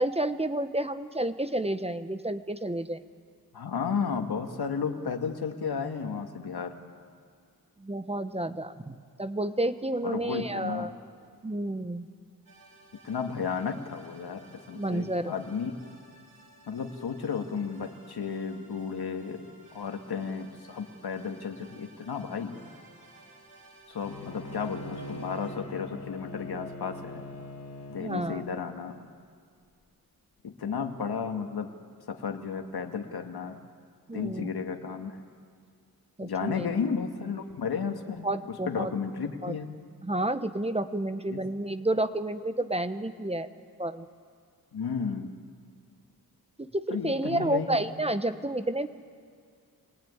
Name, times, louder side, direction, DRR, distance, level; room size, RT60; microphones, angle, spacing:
voice 1, 0.0-3.0 7.8-10.9 11.4-12.1 14.8-15.3 28.0-28.4 34.1-34.5 36.2-36.7 38.2-38.9 39.4-39.5 40.0-43.5 43.8-44.1 46.6-48.9, right 1 dB, 15° right, 10 dB, 0.9 m, -30 dB
voice 2, 3.5-6.7 10.0-10.9 13.0-15.7 16.7-19.5 19.7-22.6 23.9-27.3 27.9-29.0 30.4-31.7 32.1-33.6 34.1-35.2 36.2-39.7 41.3-41.4 44.7-45.3 46.9-47.7, left 6 dB, 80° left, 4 dB, 2.0 m, -33 dB
sound 1, 12.5-25.5, right 2 dB, 70° right, 4.8 m, -56 dB
Bowed string instrument, 24.0-28.6, left 1 dB, 45° left, 3.8 m, -42 dB
26.0 x 19.0 x 9.6 m, 2.2 s
wide cardioid pair, 120°, 37 cm